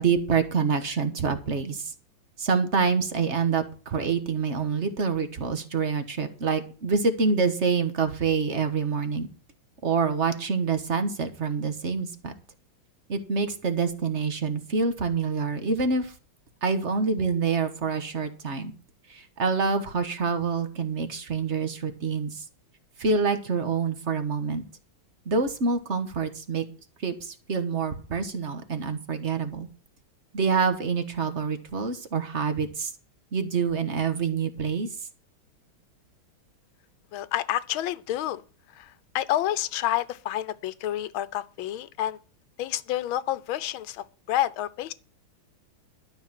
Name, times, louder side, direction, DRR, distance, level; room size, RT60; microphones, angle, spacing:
voice 1, 0.0-1.9 2.4-9.3 9.8-12.3 13.1-16.1 16.6-18.7 19.1-22.4 23.0-24.6 25.2-26.7 27.0-29.7 30.3-32.9 33.3-34.9, right 5 dB, 40° right, 1.4 m, -26 dB
voice 2, 37.1-38.4 38.7-42.2 42.6-44.9, left 13 dB, 85° left, 1.5 m, -29 dB
12.5 x 6.2 x 7.4 m
omnidirectional pair, 2.2 m